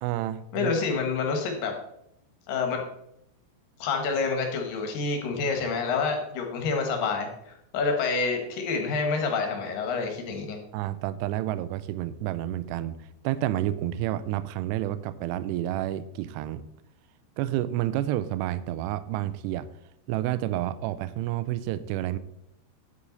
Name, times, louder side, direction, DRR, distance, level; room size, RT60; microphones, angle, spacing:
voice 1, 0.0-0.7 10.7-13.0 13.2-16.6 17.4-19.7 20.1-22.2, right 13 dB, 85° right, 14 dB, 2.5 m, -29 dB
voice 2, 0.5-1.8 2.5-2.8 3.8-10.6, left 4 dB, 60° left, 4 dB, 2.6 m, -28 dB
9.8 x 8.6 x 4.0 m, 0.79 s
omnidirectional pair, 5.1 m